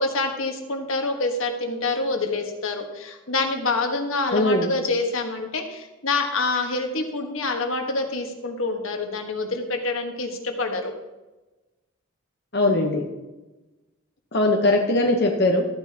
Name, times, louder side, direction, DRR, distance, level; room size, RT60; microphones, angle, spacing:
voice 1, 0.0-10.9, left 3 dB, 75° left, 4 dB, 1.5 m, -26 dB
voice 2, 4.3-4.7 12.5-13.1 14.3-15.7, left 2 dB, 50° left, 0 dB, 1.0 m, -20 dB
13.5 x 9.3 x 2.9 m, 1.1 s
head